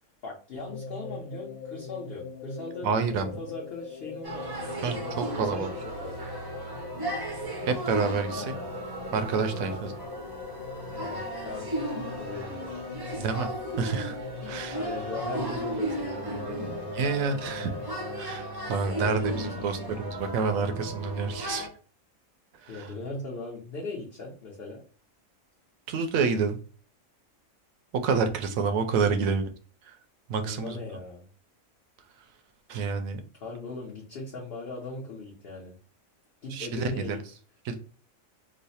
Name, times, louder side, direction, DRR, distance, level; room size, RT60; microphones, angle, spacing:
voice 1, 0.2-2.9 3.4-4.5 5.0-5.7 6.0-6.3 8.3-8.7 9.7-9.8 10.9-11.7 12.1-12.7 13.0-13.2 14.4-16.9 18.8-19.9 22.7-24.8 30.4-31.3 33.4-35.8 36.4-37.2, left 3 dB, 50° left, -3 dB, 0.9 m, -39 dB
sound 1, 0.6-18.2, left 5 dB, 90° left, 1.1 m, -42 dB
voice 2, 2.8-3.4 4.8-5.7 7.7-8.5 9.1-9.9 13.2-13.5 13.8-14.2 14.5-14.8 16.9-17.7 18.2-21.7 22.5-22.9 25.9-26.6 27.9-29.5 29.8-30.0 30.3-30.8 32.7-33.2 36.5-37.2 37.6-37.8, right 5 dB, 80° right, 8 dB, 1.0 m, -28 dB
sound 2, 4.2-21.7, right 1 dB, 30° right, 0.4 m, -35 dB
3.1 x 2.0 x 4.1 m, 0.40 s
omnidirectional pair, 1.4 m